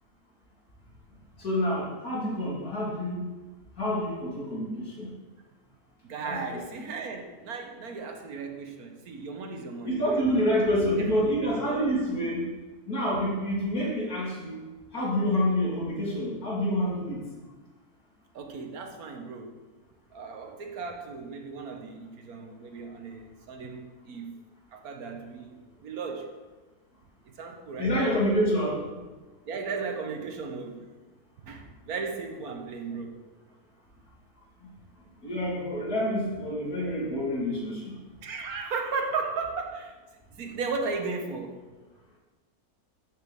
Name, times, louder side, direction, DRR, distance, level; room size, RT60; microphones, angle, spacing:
voice 1, 1.4-3.2 3.8-5.1 6.2-6.4 9.8-12.5 12.9-14.6 14.9-17.2 27.8-28.8 35.2-37.9, equal, 80° left, -6 dB, 3.6 m, -27 dB
voice 2, 6.0-10.2 10.8-11.8 18.3-19.6 20.1-24.3 24.7-26.3 27.2-28.0 29.5-30.9 31.4-33.2 38.2-39.9 40.3-41.6, right 4 dB, 80° right, 4 dB, 1.6 m, -36 dB
14.0 x 6.5 x 3.5 m, 1.2 s
omnidirectional pair, 1.6 m